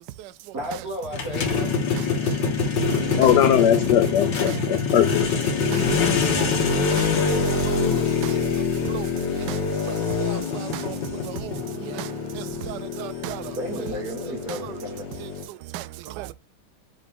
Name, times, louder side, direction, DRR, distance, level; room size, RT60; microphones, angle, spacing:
voice 1, 0.0-0.5 2.0-3.3 4.5-4.6 5.6-13.6 14.6-14.7 15.2-16.3, right 14 dB, 80° right, 0.9 m, -37 dB
voice 2, 0.5-1.7 13.6-15.0, right 1 dB, 45° right, 2.2 m, -33 dB
sound 1, 1.1-15.4, left 5 dB, 60° left, 1.9 m, -25 dB
voice 3, 3.2-5.3, left 10 dB, 85° left, 0.9 m, -20 dB
7.4 x 3.6 x 3.6 m
omnidirectional pair, 2.4 m